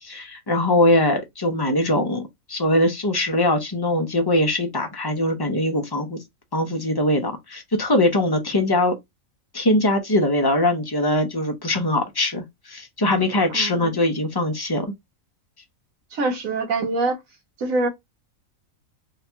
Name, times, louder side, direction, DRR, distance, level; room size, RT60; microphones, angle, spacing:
voice 1, 0.0-2.2 2.5-6.2 6.5-8.9 9.5-14.9, left 1 dB, 25° left, 0.6 m, -21 dB
voice 2, 13.5-13.9 16.1-17.2 17.6-17.9, right 3 dB, 80° right, 1.3 m, -24 dB
2.9 x 2.8 x 3.4 m
omnidirectional pair, 1.4 m